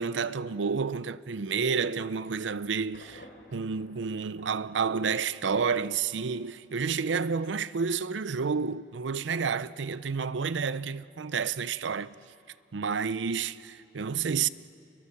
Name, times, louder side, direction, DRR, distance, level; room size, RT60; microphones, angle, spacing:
voice 1, 0.0-12.1 12.7-14.5, right 5 dB, 90° right, 0.6 m, -30 dB
Thunder, 2.9-5.9, left 1 dB, 70° left, 3.2 m, -54 dB
29.0 x 22.0 x 7.0 m
head